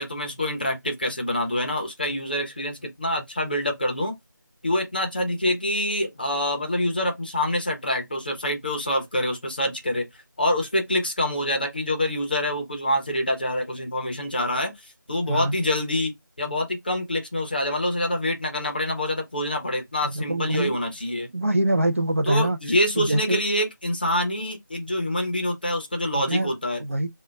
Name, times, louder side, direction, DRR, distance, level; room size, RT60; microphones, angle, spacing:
voice 1, 0.0-4.1 4.6-10.0 10.4-21.3 22.2-26.8, left 1 dB, 25° left, 0.6 m, -26 dB
voice 2, 20.0-20.8 21.3-22.6 23.0-23.4 26.3-26.5 26.8-27.1, right 1 dB, 40° right, 0.4 m, -24 dB
3.4 x 2.1 x 3.1 m
figure-of-eight pair, 175°, 11 cm